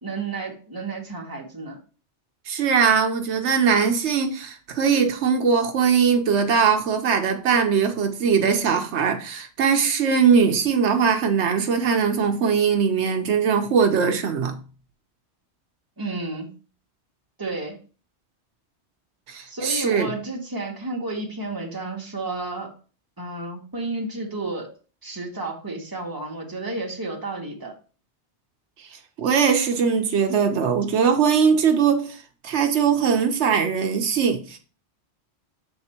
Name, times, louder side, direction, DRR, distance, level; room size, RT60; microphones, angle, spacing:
voice 1, 0.0-1.8 16.0-16.5 17.4-17.8 19.5-22.7 23.2-24.7 25.0-27.7, right 2 dB, 20° right, 1.3 m, -31 dB
voice 2, 2.5-14.6 19.3-20.1 29.2-34.6, right 6 dB, 80° right, 1.0 m, -21 dB
6.8 x 3.4 x 4.3 m
omnidirectional pair, 1.2 m